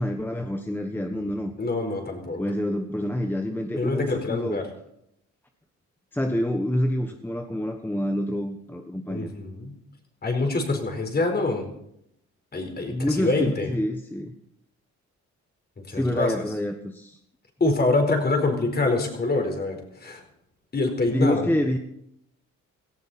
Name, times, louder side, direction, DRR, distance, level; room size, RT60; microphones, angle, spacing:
voice 1, 0.0-1.5 2.4-4.6 6.1-9.3 12.9-14.3 15.9-17.2 21.1-21.8, left 1 dB, 5° left, 5 dB, 1.3 m, -27 dB
voice 2, 1.6-2.4 3.8-4.6 9.1-9.7 10.2-11.7 12.5-13.7 15.9-16.4 17.6-20.2 20.7-21.5, left 2 dB, 30° left, 4 dB, 4.5 m, -25 dB
18.0 x 15.0 x 4.3 m, 0.75 s
cardioid pair, 90°, 30 cm